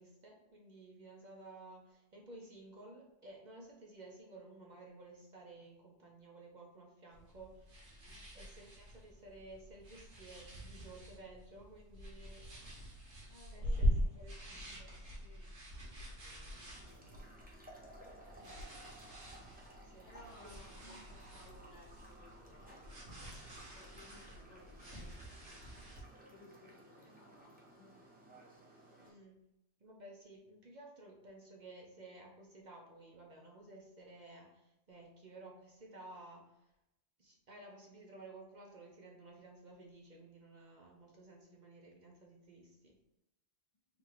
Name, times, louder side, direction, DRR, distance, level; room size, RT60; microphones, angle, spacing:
voice 1, 0.0-7.9 8.3-12.5 13.5-14.9 18.3-18.5 19.8-20.1 20.4-21.2 29.0-29.4 29.8-36.7 37.2-43.0, right 2 dB, 50° right, -1 dB, 0.7 m, -55 dB
sound 1, 7.1-26.0, equal, 75° right, 1.5 m, -43 dB
voice 2, 7.9-8.3 13.3-17.3 17.9-18.1 20.0-26.0 26.3-28.1 28.4-29.3, left 2 dB, 50° left, -1 dB, 0.7 m, -62 dB
sound 2, 16.7-29.1, right 1 dB, 10° right, 0.5 m, -57 dB
3.8 x 2.3 x 4.6 m, 0.89 s
omnidirectional pair, 1.2 m